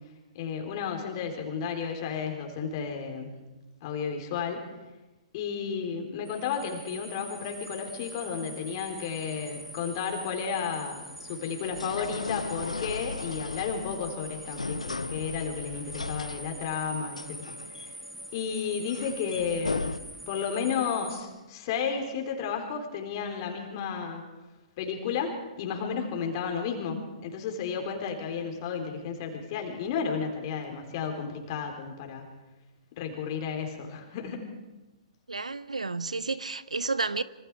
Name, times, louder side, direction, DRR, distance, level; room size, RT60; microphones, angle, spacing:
voice 1, 0.3-3.4 3.8-4.6 5.3-17.9 18.3-20.0 20.3-24.2 24.8-32.3 33.0-34.4, left 6 dB, 40° left, 4.0 m, -33 dB
sound 1, 6.3-21.2, right 1 dB, 5° right, 2.2 m, -44 dB
sound 2, 7.5-20.0, left 3 dB, 80° left, 0.9 m, -38 dB
voice 2, 35.3-37.2, right 3 dB, 80° right, 1.0 m, -31 dB
26.5 x 25.0 x 4.8 m
figure-of-eight pair, 120°, 4 cm